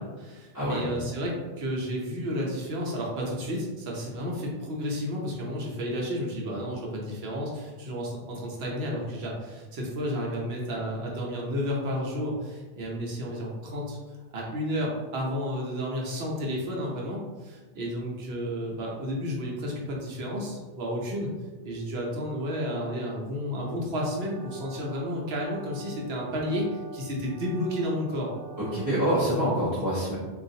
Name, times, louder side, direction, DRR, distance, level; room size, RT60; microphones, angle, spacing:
voice 1, 0.0-14.0 14.3-21.3 21.6-28.3, equal, 70° right, -2 dB, 0.9 m, -32 dB
sound 1, 23.9-29.3, equal, 30° left, 1.2 m, -47 dB
voice 2, 28.6-30.2, equal, 20° right, -12 dB, 0.8 m, -26 dB
3.8 x 2.4 x 2.7 m, 1.3 s
omnidirectional pair, 1.1 m